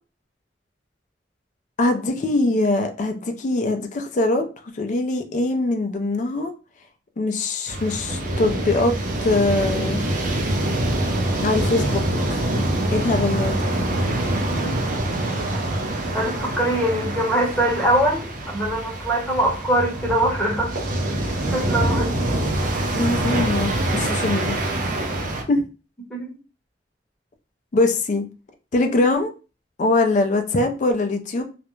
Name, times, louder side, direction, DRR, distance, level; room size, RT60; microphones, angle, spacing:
voice 1, 1.8-4.5 4.7-6.5 7.2-8.9 9.2-10.0 11.4-12.0 12.3-12.4 12.9-13.6 22.9-24.5 25.5-25.6 27.7-28.2 28.7-29.3 29.8-31.4, left 2 dB, 45° left, 6 dB, 0.4 m, -22 dB
sound 1, 7.7-25.4, right 1 dB, 50° right, 0.6 m, -25 dB
voice 2, 16.1-20.7 21.5-22.5 26.1-26.3, right 1 dB, 5° left, -3 dB, 0.9 m, -23 dB
2.4 x 2.1 x 3.0 m, 0.33 s
head